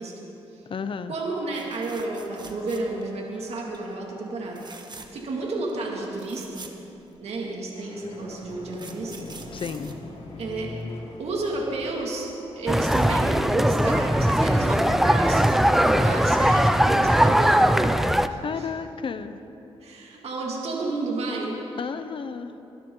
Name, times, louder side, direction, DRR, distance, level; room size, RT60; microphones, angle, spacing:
voice 1, 0.0-0.7 1.1-6.7 7.2-9.3 10.4-10.7 11.2-12.3 12.6-17.9 18.3-18.7 19.8-21.6, right 2 dB, 75° right, -2 dB, 2.4 m, -32 dB
voice 2, 0.7-1.1 9.5-10.0 18.4-19.4 21.8-22.6, left 6 dB, 55° left, 11 dB, 0.8 m, -32 dB
sound 1, 1.5-3.2 3.5-3.8 4.5-5.3 5.7-5.8 6.0-7.5 8.3-10.8 12.7-12.9 13.2-13.3, right 4 dB, 40° right, 1.4 m, -45 dB
sound 2, 7.7-17.8, left 2 dB, 75° left, 3.3 m, -42 dB
sound 3, 12.7-18.3, equal, 5° right, 0.5 m, -20 dB
23.5 x 12.0 x 3.9 m, 3.0 s
cardioid pair, 80°, 11 cm